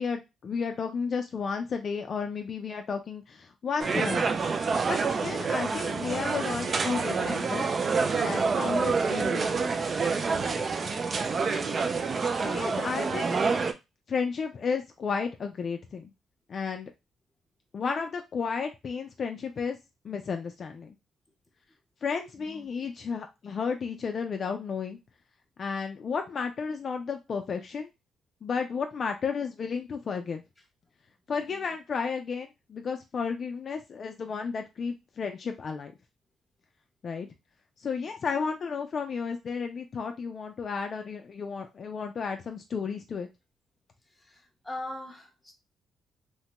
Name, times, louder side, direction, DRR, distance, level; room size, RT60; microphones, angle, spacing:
voice 1, 0.0-4.4 4.9-7.7 8.2-9.8 10.4-10.7 12.4-13.3 14.1-16.1 16.5-16.9 17.7-19.8 20.0-20.9 22.0-25.0 25.6-27.9 28.4-30.4 31.3-35.9 37.0-37.3 37.8-43.3, left 5 dB, 50° left, 0.3 m, -33 dB
sound 1, 3.8-13.7, right 4 dB, 40° right, 0.4 m, -27 dB
voice 2, 44.1-45.5, left 1 dB, 5° left, 0.9 m, -42 dB
3.0 x 2.1 x 2.8 m
cardioid pair, 90°, 0 cm